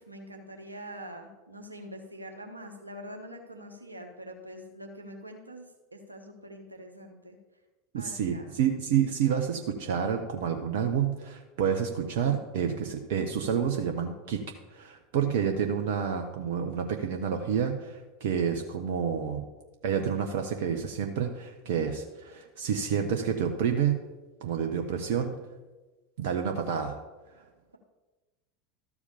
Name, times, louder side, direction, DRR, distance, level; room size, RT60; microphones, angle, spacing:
voice 1, 0.0-5.6 5.9-7.4 7.9-8.5 20.1-20.7, equal, 90° right, 3 dB, 1.2 m, -44 dB
voice 2, 7.9-14.4 14.7-19.4 19.8-24.0 24.4-25.3 26.2-27.0, right 8 dB, 60° right, 5 dB, 0.8 m, -29 dB
13.0 x 4.8 x 6.9 m, 1.1 s
figure-of-eight pair, 80°, 0 cm